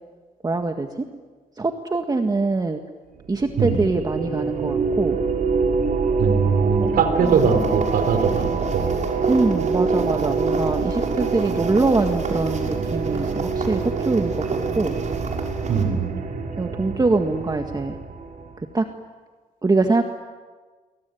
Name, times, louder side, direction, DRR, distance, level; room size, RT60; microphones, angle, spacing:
voice 1, 0.4-1.1 1.6-2.8 3.3-5.2 6.8-7.3 9.3-14.4 14.8-14.9 16.6-18.0 18.7-18.9 19.6-20.0, right 3 dB, 25° right, 5 dB, 1.8 m, -23 dB
sound 1, 3.2-18.6, right 4 dB, 70° right, 3.6 m, -26 dB
voice 2, 6.2-9.0 15.7-16.1, right 6 dB, 90° right, 9 dB, 4.2 m, -21 dB
sound 2, 7.2-15.8, right 4 dB, 55° right, 6.1 m, -34 dB
26.5 x 24.0 x 9.3 m, 1.4 s
cardioid pair, 90°, 15 cm